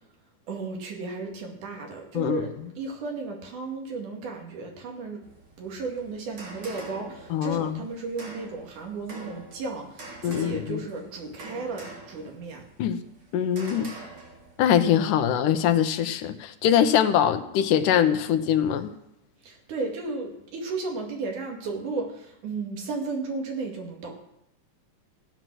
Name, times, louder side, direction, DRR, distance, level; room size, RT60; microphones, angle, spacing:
voice 1, 0.5-5.2 5.6-12.7 15.3-15.4 19.4-24.1, right 3 dB, 75° right, 1 dB, 3.6 m, -34 dB
voice 2, 2.1-2.5 7.3-7.8 10.2-10.8 12.8-13.0 13.3-13.9 14.6-18.9, left 9 dB, 85° left, 9 dB, 2.4 m, -23 dB
sound 1, 5.2-15.0, right 2 dB, 40° right, 3.1 m, -45 dB
15.5 x 9.3 x 6.2 m, 0.83 s
omnidirectional pair, 3.6 m